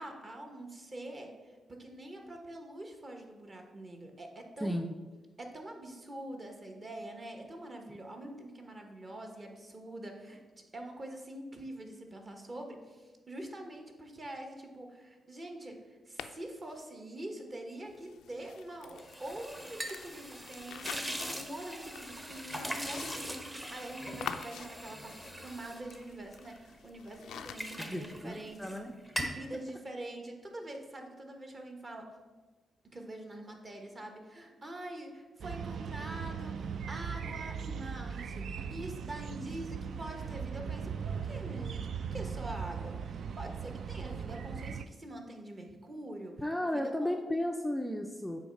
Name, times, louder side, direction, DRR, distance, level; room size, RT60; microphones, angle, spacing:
voice 1, 0.0-4.8 5.4-10.4 10.7-28.7 29.2-32.1 32.8-46.3 46.6-47.2, right 1 dB, 35° right, 3 dB, 1.1 m, -45 dB
voice 2, 4.6-5.1 27.8-28.9 46.4-48.4, left 1 dB, 5° left, 3 dB, 0.4 m, -34 dB
sound 1, 16.2-16.8 17.8-27.9, left 8 dB, 90° left, 0.3 m, -48 dB
sound 2, 19.0-26.8 27.1-28.8 29.0-29.5, equal, 10° right, 0.8 m, -41 dB
sound 3, 35.4-44.9, right 6 dB, 65° right, 0.3 m, -39 dB
8.3 x 3.2 x 5.3 m, 1.3 s
cardioid pair, 105°, 0 cm